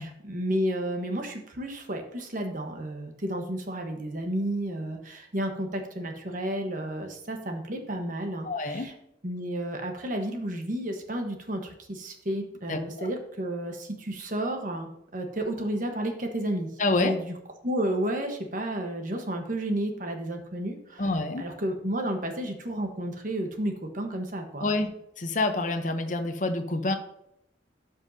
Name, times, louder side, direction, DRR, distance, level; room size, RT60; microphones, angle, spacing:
voice 1, 0.0-8.9 9.2-16.7 17.0-17.3 17.6-21.1 21.4-24.7, right 1 dB, 45° right, 4 dB, 1.2 m, -32 dB
voice 2, 8.4-8.9 12.7-13.1 16.8-17.1 21.0-21.4 24.6-24.9 25.2-26.9, left 2 dB, 45° left, 6 dB, 0.8 m, -27 dB
12.5 x 5.4 x 2.7 m, 0.76 s
head